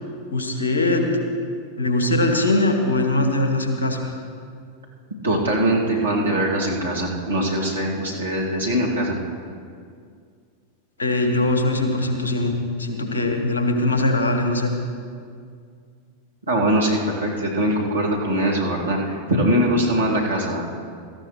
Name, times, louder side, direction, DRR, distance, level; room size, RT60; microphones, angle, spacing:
voice 1, 0.3-1.2 1.8-4.1 11.0-14.7, left 2 dB, 70° left, 4 dB, 1.5 m, -21 dB
voice 2, 5.2-9.2 16.5-20.7, right 1 dB, 75° right, -3 dB, 2.4 m, -22 dB
17.5 x 14.0 x 3.2 m, 2.2 s
figure-of-eight pair, 90°, 0 cm